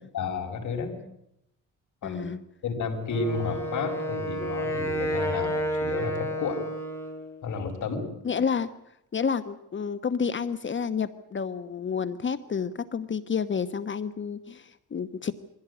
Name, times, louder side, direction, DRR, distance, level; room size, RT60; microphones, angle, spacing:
voice 1, 0.1-0.9 2.0-2.3 2.6-6.6 7.4-8.0, left 4 dB, 65° left, 2 dB, 5.8 m, -31 dB
voice 2, 2.0-2.4 8.2-8.7 9.1-15.3, left 6 dB, 35° left, 13 dB, 1.1 m, -30 dB
Wind instrument woodwind instrument, 3.1-7.3, equal, 10° left, 7.1 m, -30 dB
23.0 x 16.5 x 9.8 m, 0.80 s
cardioid pair, 110°, 31 cm